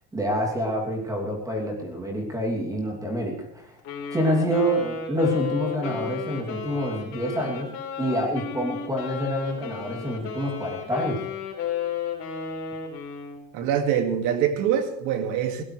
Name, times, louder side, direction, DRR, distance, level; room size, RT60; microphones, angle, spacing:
voice 1, 0.1-3.8 4.1-11.2, equal, 10° right, 0 dB, 2.8 m, -27 dB
Wind instrument woodwind instrument, 3.8-13.4, left 7 dB, 50° left, 4.1 m, -33 dB
voice 2, 13.5-15.6, right 8 dB, 80° right, 6 dB, 2.2 m, -24 dB
21.5 x 17.0 x 3.3 m, 0.81 s
cardioid pair, 160°, 30 cm